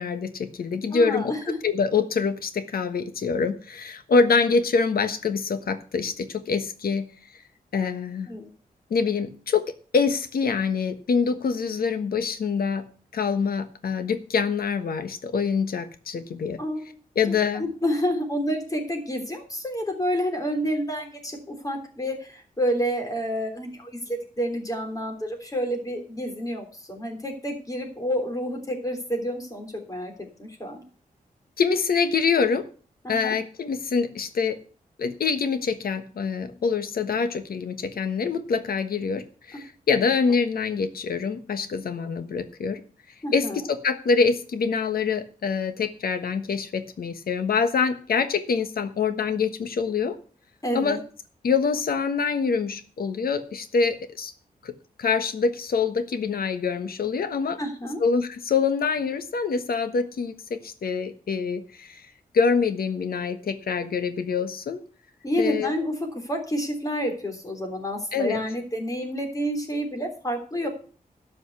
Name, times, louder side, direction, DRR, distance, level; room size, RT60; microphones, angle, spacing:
voice 1, 0.0-1.3 1.6-7.1 7.7-8.3 8.9-9.7 9.9-12.9 13.1-16.6 17.1-17.6 31.6-32.7 33.1-34.6 35.0-42.8 43.3-50.2 50.7-51.0 51.4-54.3 54.6-54.7 55.0-57.6 58.0-62.0 62.3-64.8 65.4-65.7 68.1-68.4, left 5 dB, 80° left, 10 dB, 1.4 m, -25 dB
voice 2, 0.9-1.6 8.3-8.5 16.6-17.0 17.3-30.1 30.4-30.8 33.0-33.4 39.5-39.6 40.0-40.1 43.2-43.6 50.6-51.0 57.6-58.0 65.2-70.7, equal, 25° left, 4 dB, 3.3 m, -29 dB
12.5 x 5.4 x 8.1 m, 0.41 s
wide cardioid pair, 115°, 15 cm